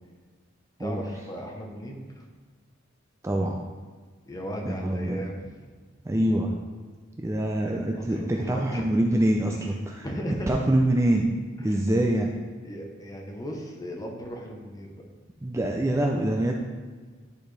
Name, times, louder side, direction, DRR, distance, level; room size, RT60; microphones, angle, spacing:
voice 1, 0.8-2.3 4.2-5.5 8.0-8.9 10.0-10.6 11.6-11.8 12.6-15.0, equal, 20° left, 1 dB, 0.9 m, -36 dB
voice 2, 3.2-3.6 4.7-5.2 6.0-6.5 7.2-10.1 10.5-11.3 11.6-12.3 15.4-16.5, right 1 dB, 15° right, 1 dB, 0.4 m, -25 dB
10.5 x 4.2 x 3.3 m, 1.5 s
head